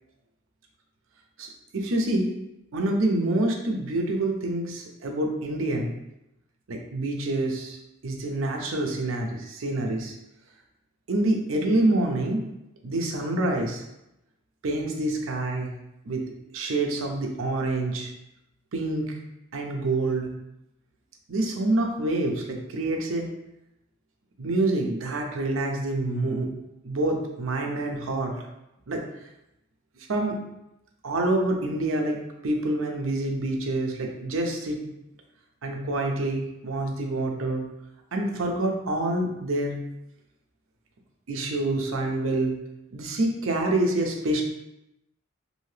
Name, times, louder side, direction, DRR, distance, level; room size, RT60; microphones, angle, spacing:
voice 1, 1.4-2.3 2.7-5.9 6.7-10.1 11.1-12.4 12.8-13.8 14.6-15.7 16.1-16.2 16.5-18.1 18.7-19.2 19.5-20.3 21.3-23.3 24.4-26.5 26.8-28.3 28.9-29.0 30.0-30.4 31.0-34.8 35.6-37.7 38.1-39.8 41.3-42.6 42.9-44.4, right 2 dB, 85° right, 1 dB, 0.6 m, -27 dB
2.8 x 2.7 x 3.2 m, 0.87 s
head